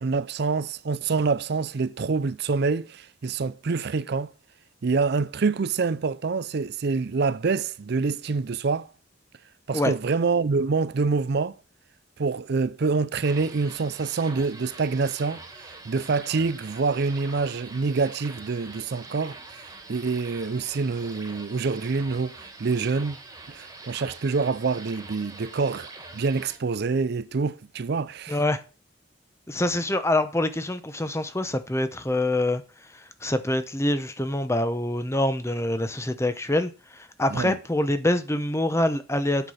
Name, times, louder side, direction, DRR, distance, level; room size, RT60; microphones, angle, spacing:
voice 1, 0.0-4.3 4.8-8.9 9.7-11.6 12.2-23.2 23.5-28.4 37.3-37.5, right 4 dB, 55° right, 0.5 m, -26 dB
sound 1, 13.2-26.6, right 3 dB, 20° right, 1.8 m, -44 dB
voice 2, 28.3-28.6 29.5-32.6 32.9-39.5, left 1 dB, 15° left, 0.9 m, -25 dB
8.0 x 6.0 x 7.1 m
head